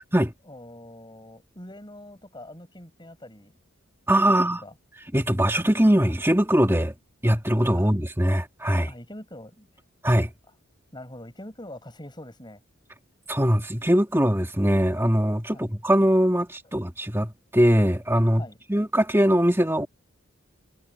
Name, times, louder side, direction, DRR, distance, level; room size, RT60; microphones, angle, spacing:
voice 1, 0.5-3.5 4.2-4.7 7.8-7.9 8.9-9.7 10.9-12.6 15.5-15.7 18.4-18.6, left 1 dB, 20° left, 6.8 m, -43 dB
voice 2, 4.1-4.6 5.1-6.9 7.2-8.9 10.0-10.3 13.3-18.4 18.7-19.9, equal, 10° right, 2.2 m, -21 dB
head